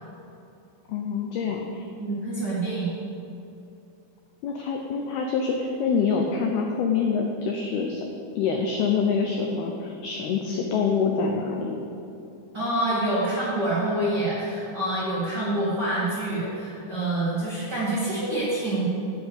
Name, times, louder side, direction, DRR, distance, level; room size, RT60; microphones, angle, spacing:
voice 1, 0.9-1.9 4.4-8.0 8.4-11.9, left 5 dB, 85° left, 2 dB, 2.2 m, -26 dB
voice 2, 2.0-2.9 12.5-18.8, right 1 dB, 35° right, -9 dB, 1.9 m, -26 dB
9.4 x 8.0 x 8.2 m, 2.7 s
omnidirectional pair, 5.6 m